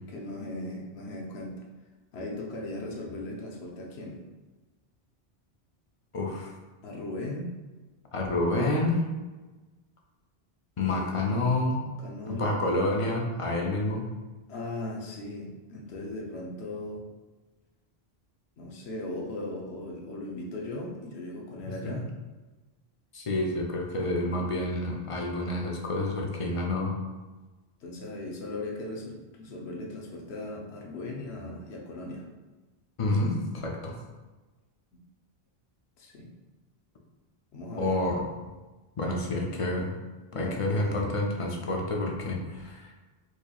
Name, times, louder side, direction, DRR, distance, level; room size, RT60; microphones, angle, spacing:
voice 1, 0.1-1.6 2.1-4.2 6.8-7.5 10.8-11.6 12.0-12.7 14.5-17.0 18.6-22.1 27.8-32.2 36.0-36.3 37.5-38.0 40.3-41.1, left 2 dB, 90° left, -1 dB, 0.9 m, -38 dB
voice 2, 6.1-6.5 8.1-9.0 10.8-11.8 12.4-14.1 21.9-22.0 23.1-26.9 33.0-33.9 37.8-38.2 39.0-39.9 40.3-42.9, left 2 dB, 40° left, 0 dB, 0.5 m, -28 dB
4.6 x 2.8 x 2.3 m, 1.2 s
omnidirectional pair, 1.1 m